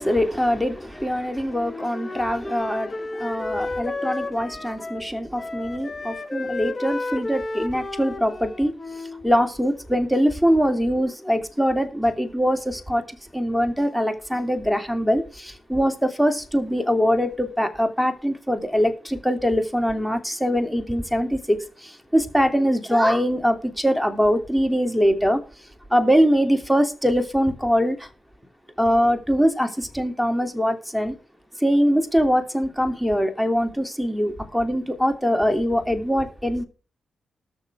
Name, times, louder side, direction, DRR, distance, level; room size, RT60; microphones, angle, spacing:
voice 1, 0.0-8.7 9.2-25.4 25.9-28.1 28.8-31.1 31.6-36.6, equal, ahead, 3.0 m, -22 dB
Wind instrument woodwind instrument, 1.5-5.1 5.4-9.3, left 2 dB, 35° left, 2.4 m, -32 dB
19.5 x 6.8 x 3.6 m
supercardioid pair, 45°, 0 cm